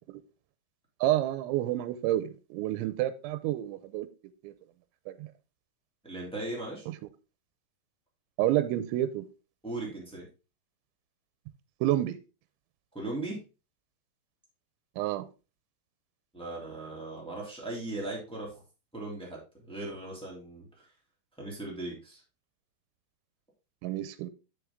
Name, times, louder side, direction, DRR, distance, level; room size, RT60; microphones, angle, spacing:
voice 1, 1.0-4.1 4.4-4.5 5.1-5.3 6.9-7.0 8.4-9.3 11.8-12.2 15.0-15.3 23.8-24.3, right 13 dB, 90° right, 3.0 m, -29 dB
voice 2, 6.0-6.9 9.6-10.3 12.9-13.4 16.3-18.5 18.9-20.8 21.4-22.2, right 2 dB, ahead, 1.3 m, -38 dB
6.9 x 6.9 x 3.6 m
omnidirectional pair, 5.2 m